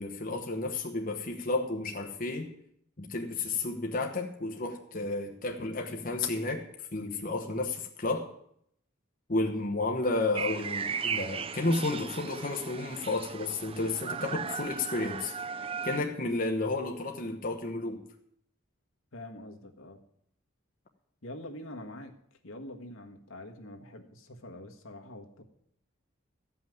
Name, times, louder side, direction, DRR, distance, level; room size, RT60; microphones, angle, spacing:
voice 1, 0.0-2.5 3.0-8.3 9.3-15.3 15.8-18.1, left 2 dB, 40° left, 2 dB, 1.0 m, -32 dB
sound 1, 10.3-16.0, right 6 dB, 25° right, 0.4 m, -36 dB
voice 2, 19.1-20.0 21.2-22.1 22.4-25.4, left 1 dB, 75° left, 4 dB, 1.5 m, -45 dB
14.0 x 5.7 x 9.3 m, 0.71 s
head